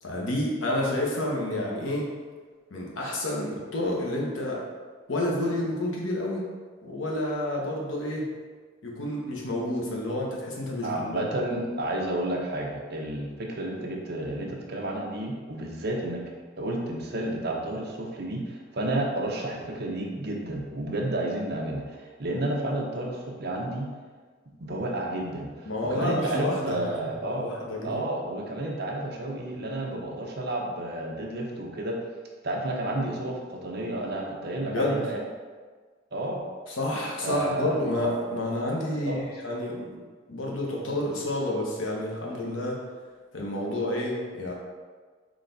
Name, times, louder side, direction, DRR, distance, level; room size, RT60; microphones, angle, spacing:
voice 1, 0.0-2.0 2.7-4.6 5.1-6.4 6.8-8.2 8.8-11.2 25.7-26.8 27.4-28.0 34.7-35.0 36.7-39.9 40.3-42.8 43.3-44.5, left 1 dB, 80° left, -3 dB, 1.0 m, -29 dB
voice 2, 10.8-16.2 16.6-23.9 24.6-27.5 27.8-32.0 32.4-35.2 36.1-36.4 37.2-37.8 38.9-39.2, right 1 dB, 55° right, 0 dB, 0.7 m, -31 dB
4.0 x 3.2 x 3.9 m, 1.5 s
head